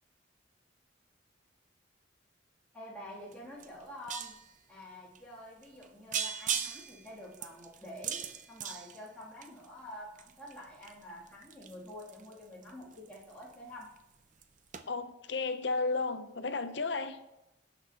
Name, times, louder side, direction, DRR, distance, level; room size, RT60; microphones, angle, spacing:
voice 1, 2.7-4.3 4.7-8.2 8.5-13.9, left 1 dB, 5° left, -9 dB, 2.7 m, -48 dB
sound 1, 3.3-3.4 3.6-4.5 5.1-5.2 5.6-5.8 6.1-9.7 10.1-13.5 13.8-14.1 14.4-14.5 14.7-14.8, right 8 dB, 40° right, 0.5 m, -38 dB
voice 2, 14.9-17.2, left 3 dB, 60° left, 9 dB, 0.7 m, -33 dB
17.0 x 5.9 x 2.9 m, 0.92 s
head